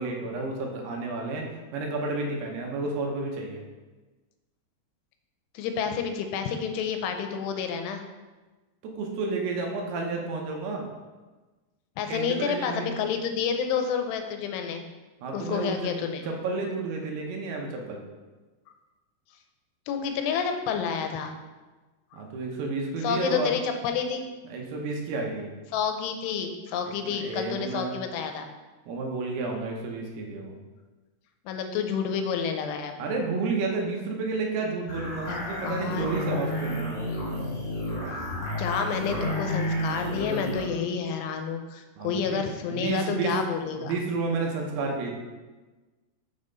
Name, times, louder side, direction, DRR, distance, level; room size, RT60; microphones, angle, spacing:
voice 1, 0.0-1.4 1.7-3.6 9.0-10.9 12.1-12.9 15.2-15.9 16.2-18.0 22.1-23.5 24.5-25.5 27.0-27.9 28.9-30.6 33.0-37.1 42.0-42.4 42.7-43.4 43.8-45.2, right 3 dB, 80° right, 1 dB, 2.8 m, -31 dB
voice 2, 5.5-8.0 12.0-14.8 15.3-16.3 19.9-21.3 23.0-24.3 25.7-28.5 31.5-33.0 35.3-36.3 38.6-43.9, left 6 dB, 90° left, 6 dB, 2.8 m, -29 dB
sound 1, 34.9-40.7, left 1 dB, 45° left, 2.2 m, -31 dB
6.5 x 5.5 x 3.9 m, 1.2 s
omnidirectional pair, 4.7 m